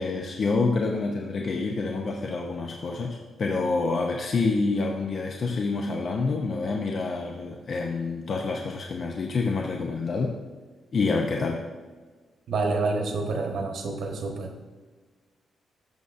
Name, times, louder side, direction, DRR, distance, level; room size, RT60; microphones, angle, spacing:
voice 1, 0.0-10.4 10.9-11.6, left 3 dB, 50° left, 1 dB, 0.6 m, -27 dB
voice 2, 12.5-14.5, right 3 dB, 70° right, 3 dB, 1.1 m, -28 dB
12.5 x 6.3 x 2.5 m, 1.4 s
cardioid pair, 115°, 0 cm